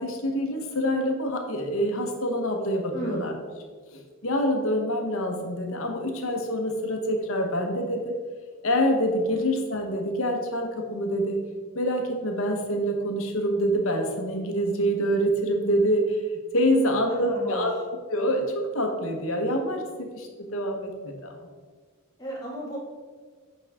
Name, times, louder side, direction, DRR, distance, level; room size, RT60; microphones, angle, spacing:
voice 1, 0.0-3.3 3.9-8.2 8.6-11.4 11.7-16.2 16.5-17.7 18.1-21.3, equal, 70° left, 3 dB, 1.2 m, -26 dB
voice 2, 2.9-3.3 9.3-9.4 16.8-17.7 22.2-22.8, equal, 20° left, -5 dB, 1.8 m, -35 dB
8.4 x 5.6 x 3.6 m, 1.5 s
head